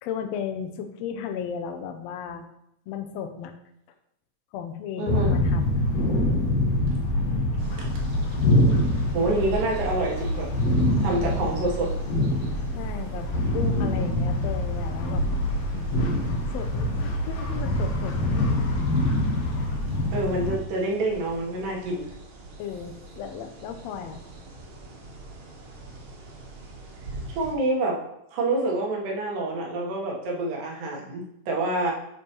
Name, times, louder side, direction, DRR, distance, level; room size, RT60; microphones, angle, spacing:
voice 1, 0.0-2.4 2.9-3.5 4.5-5.8 12.7-18.3 22.6-24.2, left 7 dB, 85° left, 6 dB, 1.5 m, -35 dB
voice 2, 5.0-5.3 7.8-7.9 9.1-10.5 11.0-11.9 20.1-22.1 27.4-28.0 28.3-31.9, right 2 dB, 80° right, -2 dB, 3.0 m, -27 dB
sound 1, 5.1-20.6, left 1 dB, 65° left, 1.6 m, -25 dB
sound 2, 7.6-27.5, right 2 dB, 55° right, 2.0 m, -44 dB
10.0 x 4.5 x 3.0 m, 0.80 s
omnidirectional pair, 3.9 m